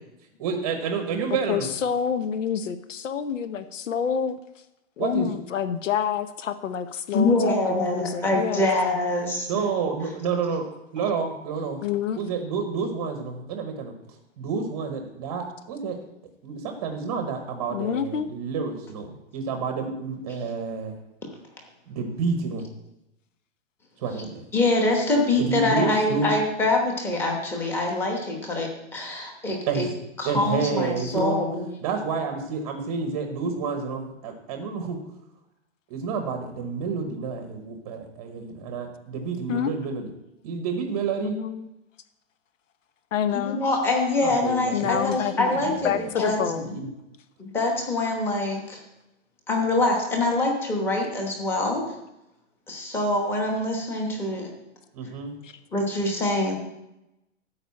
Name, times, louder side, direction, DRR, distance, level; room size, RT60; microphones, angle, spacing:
voice 1, 0.4-1.7 5.0-5.3 9.5-10.6 10.9-11.8 12.1-13.9 14.4-16.0 16.4-21.0 21.9-22.7 24.0-24.5 25.4-26.3 29.7-29.9 30.2-31.4 31.8-35.0 35.9-40.1 40.4-41.4 44.2-45.0 45.3-45.8 46.5-46.9 54.9-55.3, right 5 dB, 20° right, 5 dB, 0.9 m, -29 dB
voice 2, 1.5-4.4 5.0-8.7 11.8-12.2 17.7-18.3 39.5-39.7 41.2-41.7 43.1-43.6 44.7-46.8 55.4-55.5, left 8 dB, 80° left, 11 dB, 1.1 m, -28 dB
voice 3, 7.1-9.5 24.5-29.9 30.2-31.6 43.3-46.4 47.4-48.8 49.5-51.8 52.7-54.5 55.7-56.5, left 2 dB, 5° left, 0 dB, 1.1 m, -24 dB
13.5 x 5.0 x 8.3 m, 0.90 s
hypercardioid pair, 180°, 37 cm